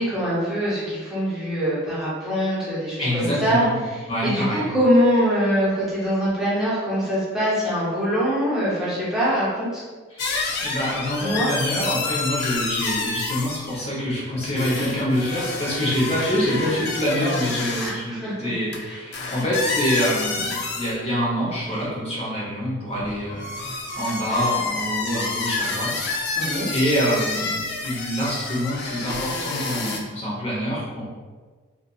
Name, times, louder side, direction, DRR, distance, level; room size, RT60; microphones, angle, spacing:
voice 1, 0.0-3.6 4.2-9.8 11.2-11.5 17.8-18.5 18.9-19.0 26.4-26.7, equal, 5° right, -10 dB, 0.6 m, -23 dB
voice 2, 3.0-3.7 4.1-4.7 10.1-10.3 10.6-23.6 24.0-26.4 26.7-31.1, equal, 30° left, -6 dB, 0.8 m, -26 dB
sound 1, 10.2-13.8 14.4-17.9 18.7-18.8 19.1-21.0 21.5-21.9 22.9-30.0, left 3 dB, 55° left, 0.4 m, -29 dB
2.6 x 2.6 x 2.3 m, 1.4 s
head